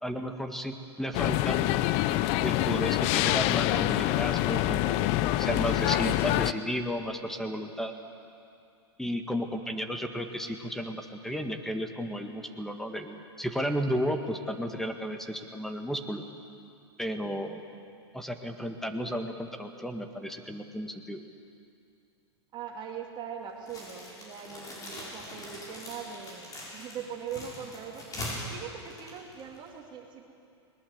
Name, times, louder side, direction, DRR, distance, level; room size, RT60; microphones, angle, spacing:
voice 1, 0.0-1.8 2.4-5.1 5.4-7.9 9.0-16.3 17.0-17.6 18.1-21.2, equal, 5° left, 6 dB, 1.8 m, -33 dB
sound 1, 1.1-6.5, left 15 dB, 50° left, 0.7 m, -26 dB
voice 2, 22.5-28.1 28.5-30.3, right 7 dB, 35° right, 2 dB, 2.7 m, -41 dB
sound 2, 23.6-29.8, left 1 dB, 25° left, 7.7 m, -42 dB
21.0 x 20.0 x 8.1 m, 2.5 s
hypercardioid pair, 110°, 14 cm